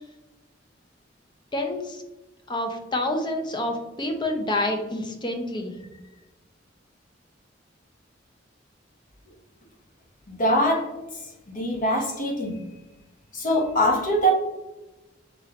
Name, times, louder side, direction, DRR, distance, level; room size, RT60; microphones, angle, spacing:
voice 1, 1.5-2.0 2.5-5.7, left 1 dB, 25° left, 4 dB, 0.6 m, -28 dB
voice 2, 10.3-10.9 11.5-12.6 13.3-14.3, equal, 45° left, -1 dB, 1.0 m, -23 dB
5.7 x 3.1 x 2.5 m, 1.1 s
head